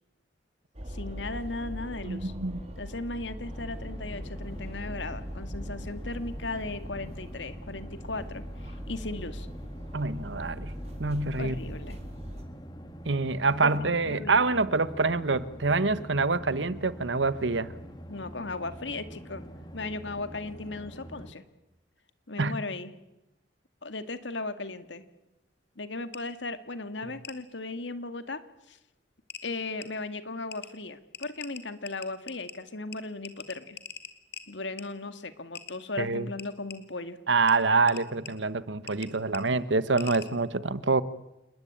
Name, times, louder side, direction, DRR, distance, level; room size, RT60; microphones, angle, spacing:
sound 1, 0.7-12.4, equal, 35° right, 3.8 m, -40 dB
voice 1, 0.9-2.3 2.8-9.5 11.4-12.0 13.6-14.6 18.1-19.4 19.7-21.4 22.3-22.9 23.8-25.0 25.8-28.4 28.7-28.8 29.4-33.8 34.5-37.2, left 3 dB, 85° left, 2.1 m, -37 dB
voice 2, 2.0-2.6 9.9-10.7 11.0-11.6 13.0-17.7 22.4-22.5 36.0-36.3 37.3-41.0, right 3 dB, 85° right, 1.2 m, -26 dB
sound 2, 3.4-21.3, equal, 25° left, 2.5 m, -45 dB
sound 3, 26.1-26.2 27.2-27.4 28.7-28.8 29.3-29.4 29.8-29.9 30.5-30.7 31.1-32.6 32.9-33.0 33.2-34.4 34.8-34.9 35.5-35.8 36.4-36.8 37.5-37.6 37.9-38.3 38.9-39.1 39.3-39.4 40.0-40.3, left 8 dB, 60° left, 2.6 m, -42 dB
28.5 x 20.5 x 8.8 m
head